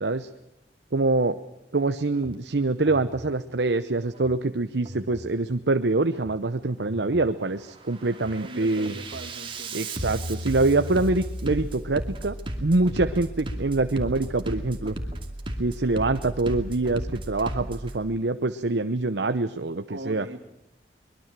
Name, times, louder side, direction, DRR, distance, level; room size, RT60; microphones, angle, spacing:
voice 1, 0.9-1.4 1.7-8.9 9.7-12.3 12.6-15.0 15.6-20.3, right 2 dB, 75° right, 9 dB, 0.9 m, -25 dB
Bass drum, 2.1-2.4 2.9-3.3 4.1-4.4 4.9-5.3 6.1-6.4 6.9-7.4 7.8-18.0, right 1 dB, 30° right, 2.5 m, -35 dB
voice 2, 8.4-9.8 19.9-20.4, right 2 dB, 90° right, 6 dB, 2.7 m, -40 dB
23.5 x 21.5 x 7.5 m, 0.86 s
head